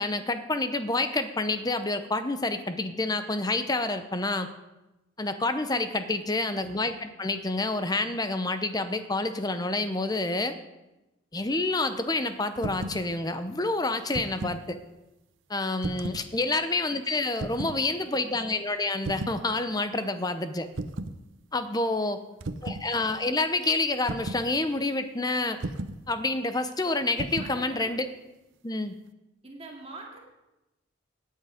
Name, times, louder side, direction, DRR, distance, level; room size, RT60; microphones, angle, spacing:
voice 1, 0.0-4.5 5.2-10.6 11.3-14.8 15.5-20.7 21.5-22.2 22.6-25.6 26.1-28.1 28.6-28.9, left 2 dB, 20° left, 10 dB, 0.8 m, -28 dB
voice 2, 6.5-7.0 17.7-18.5 22.0-22.6 27.4-27.9 29.4-30.2, right 2 dB, 30° right, -1 dB, 2.3 m, -47 dB
sound 1, 12.6-13.0 13.9-14.6 15.8-16.3 17.4-17.8 19.0-19.4 20.8-21.2 22.4-22.9 24.1-24.5 25.6-26.0 27.2-27.6, right 2 dB, 85° right, 0.7 m, -34 dB
17.0 x 9.5 x 5.1 m, 0.99 s
head